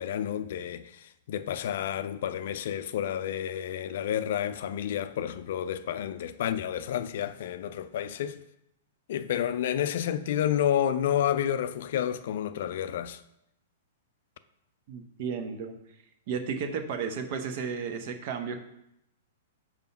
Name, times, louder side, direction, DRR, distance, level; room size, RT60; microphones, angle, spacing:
voice 1, 0.0-8.4 9.1-13.2, left 10 dB, 55° left, 0.4 m, -30 dB
voice 2, 14.9-15.7 16.3-18.6, right 6 dB, 45° right, 0.9 m, -33 dB
5.4 x 4.9 x 5.5 m
figure-of-eight pair, 105°, 0 cm